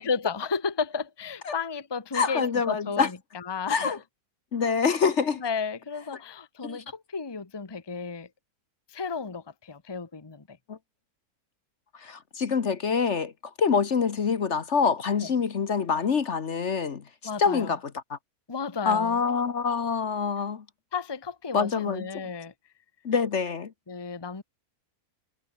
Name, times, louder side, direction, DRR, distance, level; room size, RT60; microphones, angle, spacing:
voice 1, 0.0-4.0 5.4-8.3 8.9-10.6 15.2-15.3 17.2-17.7 18.5-19.2 20.9-22.5 23.9-24.4, left 5 dB, 20° left, 1.0 m, -33 dB
voice 2, 2.1-3.1 3.7-4.0 4.5-5.4 6.6-6.8 10.7-10.8 12.0-13.3 13.6-17.0 17.4-18.2 18.8-20.6 21.5-22.1 23.0-23.7, left 5 dB, 50° left, 1.4 m, -26 dB
omnidirectional pair, 1.6 m